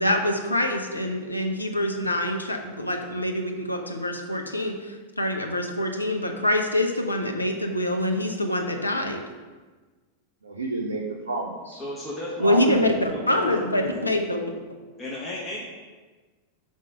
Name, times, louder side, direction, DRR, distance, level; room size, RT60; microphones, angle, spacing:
voice 1, 0.0-9.2 12.4-14.4, left 1 dB, 85° left, 3 dB, 0.6 m, -25 dB
voice 2, 10.4-11.8 12.4-12.9, right 2 dB, 75° right, -3 dB, 0.5 m, -30 dB
voice 3, 11.7-14.2 15.0-15.6, left 1 dB, 25° left, -5 dB, 1.1 m, -35 dB
5.1 x 3.5 x 5.3 m, 1.3 s
figure-of-eight pair, 90°, 0 cm